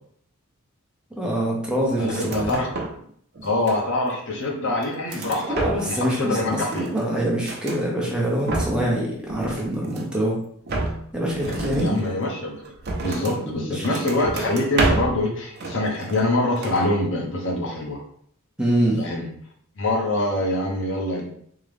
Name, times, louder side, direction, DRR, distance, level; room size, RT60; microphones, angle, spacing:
voice 1, 1.1-2.6 5.5-10.4 11.1-12.0 13.2-14.0 18.6-19.0, right 1 dB, 5° right, -3 dB, 0.8 m, -25 dB
voice 2, 2.0-2.7 3.4-5.6 5.8-6.9 11.6-12.7 13.0-18.0 19.0-19.3 19.8-21.3, left 1 dB, 60° left, 0 dB, 0.9 m, -24 dB
sound 1, 2.1-3.1 3.3-4.1 4.6-6.1 6.4-7.8 8.2-9.0 9.3-10.2 10.7-13.4 13.8-15.2 15.6-16.3 16.6-16.9, right 2 dB, 50° right, 0.6 m, -30 dB
3.7 x 3.0 x 3.3 m, 0.65 s
head